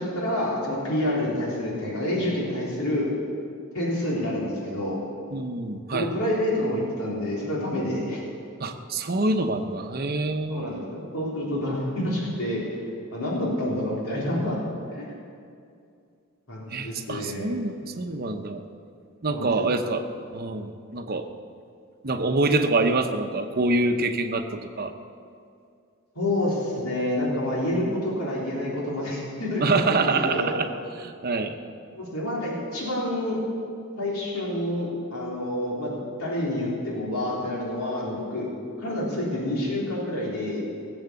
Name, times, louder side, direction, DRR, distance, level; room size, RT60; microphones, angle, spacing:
voice 1, 0.0-3.1 3.7-5.0 5.9-8.2 10.5-12.8 13.1-14.6 14.9-15.1 16.5-17.5 19.3-19.7 26.2-30.5 31.9-33.4 34.0-38.5 38.8-40.6, left 1 dB, 80° left, -5 dB, 3.8 m, -28 dB
voice 2, 5.3-6.1 8.6-10.7 16.7-18.6 19.2-20.0 20.3-21.3 22.0-24.4 24.8-24.9 29.6-30.7 31.0-31.6, right 3 dB, 45° right, 6 dB, 0.8 m, -25 dB
18.5 x 8.0 x 7.0 m, 2.4 s
head